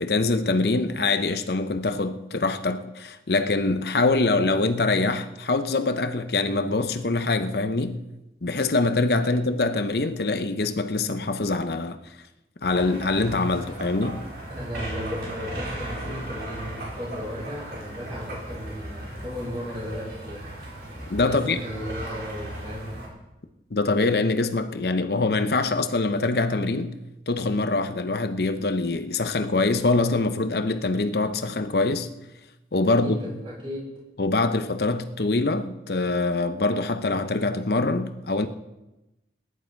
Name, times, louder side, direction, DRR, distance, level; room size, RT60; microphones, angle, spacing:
voice 1, 0.0-8.0 8.4-12.0 12.6-14.2 21.1-21.6 23.7-27.0 27.3-32.1 32.7-33.2 34.2-38.5, left 3 dB, 65° left, 0.8 m, -24 dB
sound 1, 12.6-23.1, right 1 dB, 65° right, 4.5 m, -37 dB
voice 2, 14.5-20.5 21.3-22.9 33.0-34.0, equal, 30° right, 6.9 m, -35 dB
19.5 x 10.5 x 4.6 m
head